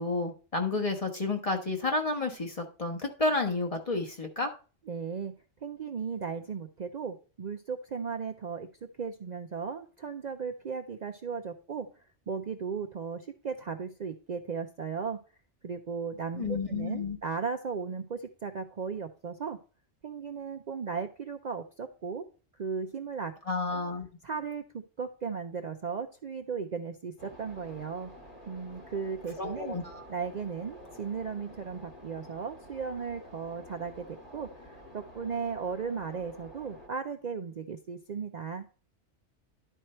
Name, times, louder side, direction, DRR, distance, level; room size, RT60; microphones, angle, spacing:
voice 1, 0.0-4.5 16.4-17.2 23.5-24.1 29.4-30.1, left 3 dB, 30° left, 3 dB, 1.3 m, -31 dB
voice 2, 4.9-5.3 5.6-8.7 9.0-11.9 12.3-15.2 15.6-19.6 20.0-22.3 22.6-23.3 24.2-28.1 28.5-29.8 30.1-38.7, right 5 dB, 50° right, 6 dB, 0.6 m, -36 dB
sound 1, 27.2-36.9, left 1 dB, 45° left, 2.0 m, -50 dB
11.0 x 4.5 x 4.4 m, 0.36 s
omnidirectional pair, 1.2 m